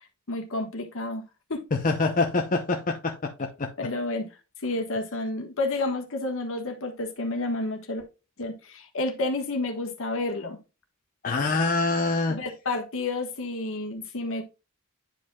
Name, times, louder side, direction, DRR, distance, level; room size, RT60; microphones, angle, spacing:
voice 1, 0.3-1.2 1.5-1.6 3.8-4.3 4.6-8.0 8.4-10.6 12.3-14.4, left 2 dB, 65° left, 1.4 m, -30 dB
voice 2, 1.7-3.7 11.2-12.4, left 3 dB, 40° left, 0.7 m, -25 dB
10.5 x 5.1 x 2.3 m
head